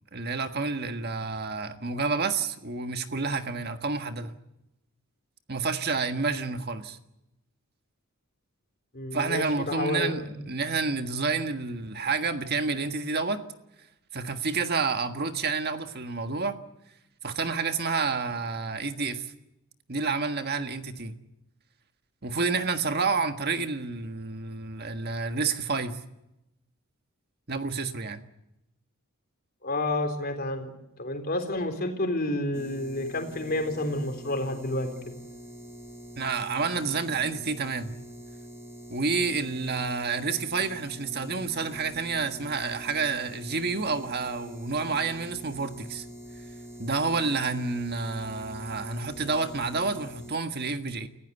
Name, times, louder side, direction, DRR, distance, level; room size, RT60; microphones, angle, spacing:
voice 1, 0.1-4.3 5.5-7.0 9.1-13.4 14.1-16.6 17.2-19.3 19.9-21.1 22.2-26.0 27.5-28.2 36.2-37.9 38.9-46.0 46.8-51.1, right 4 dB, 50° right, 1.6 m, -29 dB
voice 2, 8.9-10.4 29.6-30.7 31.0-34.9, left 1 dB, 45° left, 3.8 m, -30 dB
sound 1, 32.5-50.3, right 1 dB, 10° right, 4.6 m, -44 dB
29.5 x 15.5 x 8.2 m
head